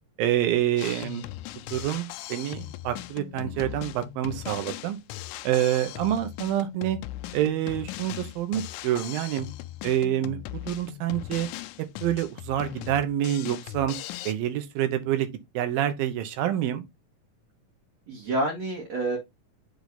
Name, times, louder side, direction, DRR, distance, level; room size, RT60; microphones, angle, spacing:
voice 1, 0.2-1.2 1.7-5.0 5.4-7.0 7.3-9.5 9.8-11.5 12.0-14.0 14.3-15.3 15.5-16.8, right 12 dB, 90° right, 2.8 m, -27 dB
Drum kit, 0.8-14.3, left 15 dB, 85° left, 1.7 m, -39 dB
voice 2, 3.4-3.7 18.1-19.2, right 2 dB, 55° right, 2.6 m, -29 dB
7.8 x 3.4 x 4.0 m
omnidirectional pair, 4.0 m